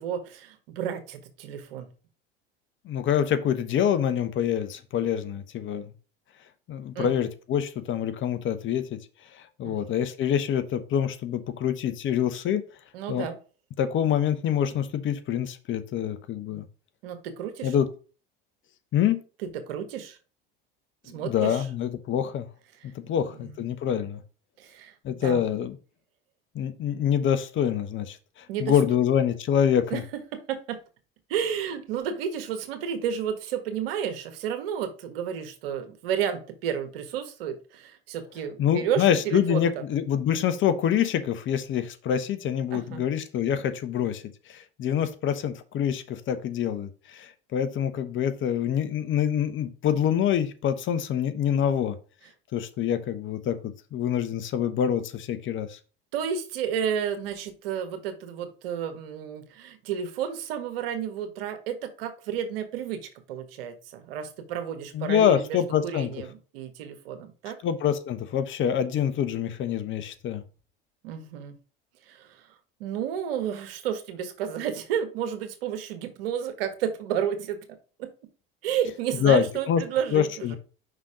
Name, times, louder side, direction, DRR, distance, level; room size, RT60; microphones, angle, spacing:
voice 1, 0.0-1.9 6.9-7.1 9.6-9.8 12.9-13.4 17.0-17.7 19.4-20.2 21.0-21.7 23.3-23.5 24.6-24.9 25.2-25.4 28.5-28.8 29.9-30.8 31.3-39.7 42.7-43.0 56.1-67.6 71.0-71.6 72.1-72.4 72.8-77.6 78.0-78.1 78.6-80.6, right 8 dB, 75° right, 7 dB, 1.5 m, -31 dB
voice 2, 2.8-5.9 6.7-9.0 9.6-12.6 13.1-13.3 13.8-16.6 17.6-17.9 18.9-19.2 21.2-22.5 22.8-24.2 25.0-25.8 26.5-30.0 38.6-44.2 44.5-52.0 52.5-55.8 64.9-66.1 67.6-70.4 79.2-79.8 80.1-80.6, left 9 dB, 40° left, 11 dB, 1.0 m, -26 dB
5.6 x 4.0 x 4.9 m, 0.36 s
hypercardioid pair, 80°, 29 cm